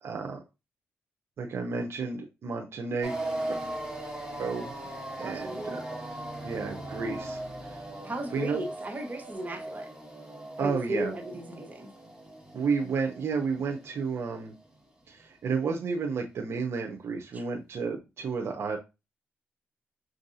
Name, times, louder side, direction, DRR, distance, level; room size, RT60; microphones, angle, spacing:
voice 1, 0.0-0.4 1.4-3.2 4.4-4.7 5.2-6.0 6.4-7.8 8.3-8.6 10.6-11.1 12.5-14.5 15.1-18.8, right 5 dB, 65° right, 0.6 m, -32 dB
sound 1, 3.0-14.6, right 1 dB, 5° right, 1.6 m, -39 dB
voice 2, 5.2-5.8 8.0-9.9 10.6-11.9 17.3-17.4, right 1 dB, 35° right, 1.1 m, -35 dB
6.1 x 2.6 x 2.6 m
cardioid pair, 65°, 5 cm